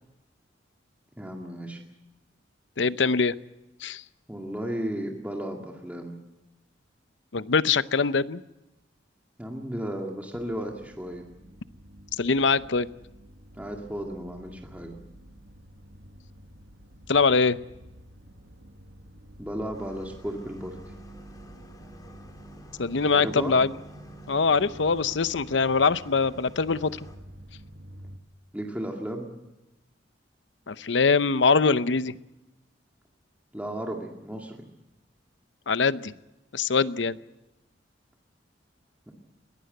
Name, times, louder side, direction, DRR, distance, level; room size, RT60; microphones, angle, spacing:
voice 1, 1.2-1.8 4.3-6.1 9.4-11.2 13.5-15.0 19.4-20.8 23.1-23.6 28.5-29.3 33.5-34.6 39.1-39.2, equal, 10° right, 0 dB, 2.2 m, -34 dB
voice 2, 2.8-3.4 3.8-4.0 7.3-8.4 12.2-12.9 17.1-17.6 22.8-23.7 24.3-27.0 30.7-32.1 35.7-36.1 36.5-37.2, left 4 dB, 70° left, 15 dB, 0.7 m, -23 dB
sound 1, 10.3-28.2, right 1 dB, 75° right, 1.9 m, -48 dB
sound 2, 19.7-27.2, equal, 20° left, 2.7 m, -52 dB
22.0 x 18.0 x 7.9 m, 0.98 s
head